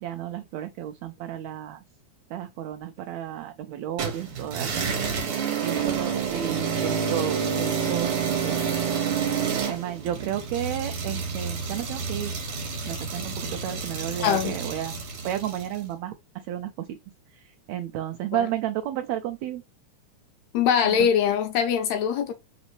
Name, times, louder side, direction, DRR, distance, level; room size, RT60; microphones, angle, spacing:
voice 1, 0.0-1.8 2.3-4.8 5.6-8.6 9.4-12.3 12.9-14.9 15.2-17.0 17.3-19.6 20.8-21.1, right 11 dB, 80° right, 1.7 m, -32 dB
sound 1, 4.0-15.8, right 6 dB, 55° right, 1.9 m, -29 dB
voice 2, 14.2-14.6 18.3-18.4 20.5-22.3, left 8 dB, 75° left, 1.8 m, -22 dB
4.1 x 3.9 x 3.1 m
omnidirectional pair, 3.4 m